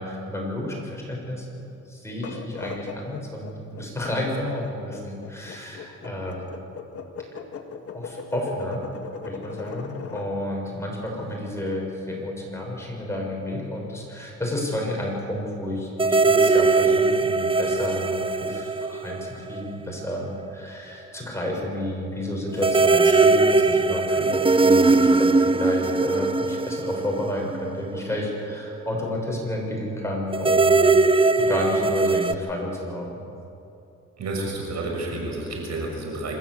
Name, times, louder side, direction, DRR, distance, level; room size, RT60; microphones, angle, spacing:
voice 1, 0.0-6.4 7.9-8.8 9.2-30.9 31.4-33.2, left 1 dB, 10° left, -2 dB, 6.6 m, -31 dB
sound 1, 2.1-10.3, left 5 dB, 50° left, 1.9 m, -38 dB
sound 2, 16.0-19.7 20.0-20.1 22.6-28.0 30.3-32.3, right 3 dB, 15° right, 0.7 m, -20 dB
voice 2, 34.2-36.4, right 2 dB, 60° right, 0 dB, 6.3 m, -30 dB
26.5 x 13.5 x 8.1 m, 2.8 s
cardioid pair, 90°, 30 cm